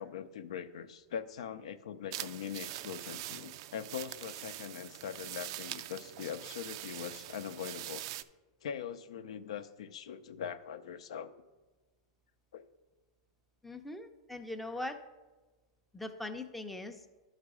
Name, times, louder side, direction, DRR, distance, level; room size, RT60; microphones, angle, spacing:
voice 1, 0.0-8.0 8.6-11.4 12.5-12.7, left 8 dB, 80° left, 12 dB, 0.5 m, -42 dB
sound 1, 2.1-8.2, right 14 dB, 55° right, 0.3 m, -43 dB
voice 2, 13.6-15.0 15.9-17.0, left 2 dB, ahead, 5 dB, 0.5 m, -41 dB
11.5 x 4.0 x 4.8 m, 1.2 s
supercardioid pair, 140°, 3 cm